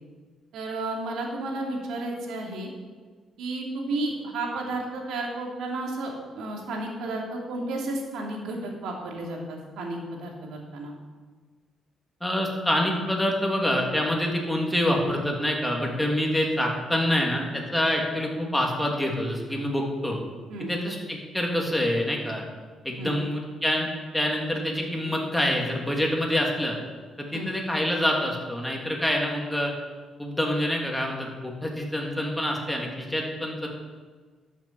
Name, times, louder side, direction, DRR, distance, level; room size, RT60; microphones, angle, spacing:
voice 1, 0.5-2.7 3.4-10.9 20.5-20.7 23.0-23.2 27.3-27.5, right 2 dB, 80° right, 0 dB, 2.8 m, -32 dB
voice 2, 12.2-20.2 20.7-22.4 22.8-26.7 27.2-29.7 30.2-33.7, left 1 dB, 5° left, -1 dB, 2.8 m, -26 dB
12.0 x 7.4 x 7.3 m, 1.4 s
cardioid pair, 90°, 0 cm